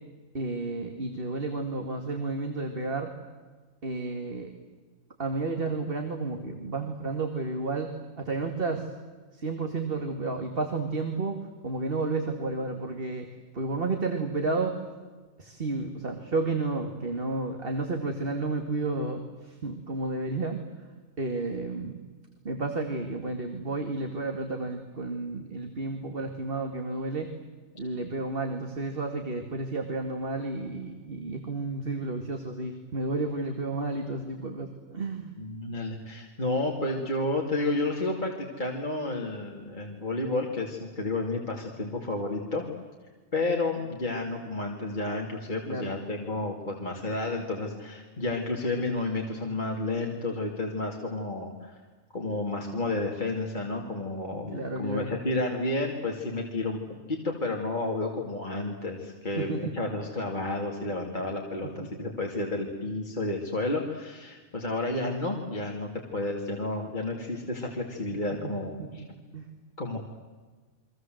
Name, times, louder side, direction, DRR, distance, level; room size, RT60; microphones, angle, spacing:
voice 1, 0.3-3.1 3.8-4.5 5.2-7.9 8.2-8.9 9.3-13.3 13.5-14.7 15.4-20.6 21.2-22.0 22.4-27.3 27.8-35.3 45.7-45.9 54.5-55.1 59.4-59.6 61.8-61.9 68.3-68.5 68.8-69.1 69.3-69.5, right 3 dB, 40° right, 5 dB, 2.3 m, -31 dB
voice 2, 35.4-42.6 43.3-51.8 52.1-69.0 69.8-70.0, left 2 dB, 35° left, 0 dB, 2.8 m, -31 dB
30.0 x 23.5 x 7.9 m, 1.4 s
omnidirectional pair, 1.4 m